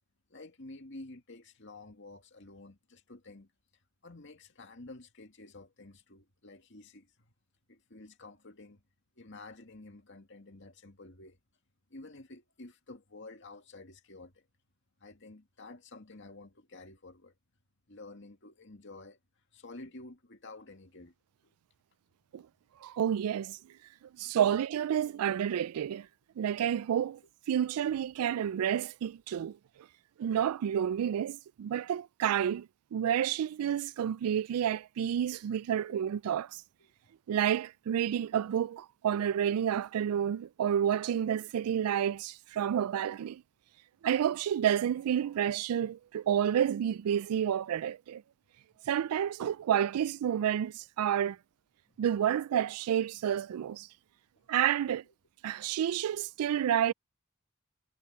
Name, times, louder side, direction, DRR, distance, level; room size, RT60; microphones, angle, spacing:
voice 1, 0.3-3.5 4.0-7.3 7.7-8.8 9.2-11.4 11.9-14.5 15.0-17.3 17.9-19.2 19.5-21.1 21.4-21.5 22.3-22.4 24.5-24.6 26.4-26.6 27.8-27.9 35.8-36.0 36.8-36.9 51.9-52.0 54.4-54.5 54.9-55.0, left 2 dB, 55° left, 2.2 m, -51 dB
voice 2, 22.8-23.6 24.2-26.1 26.4-27.2 27.5-29.6 30.2-36.6 37.3-43.4 44.0-48.2 48.9-51.4 52.0-53.9 54.5-55.0 55.4-56.9, right 9 dB, 85° right, 0.3 m, -30 dB
head